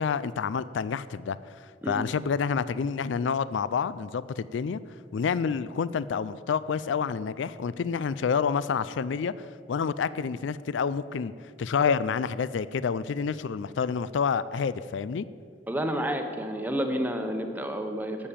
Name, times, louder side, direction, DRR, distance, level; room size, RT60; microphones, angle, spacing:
voice 1, 0.0-4.8 5.1-11.3 11.6-15.3, left 6 dB, 80° left, 17 dB, 0.4 m, -28 dB
voice 2, 15.7-18.2, equal, 10° right, 5 dB, 0.9 m, -30 dB
11.5 x 7.5 x 8.6 m, 2.2 s
head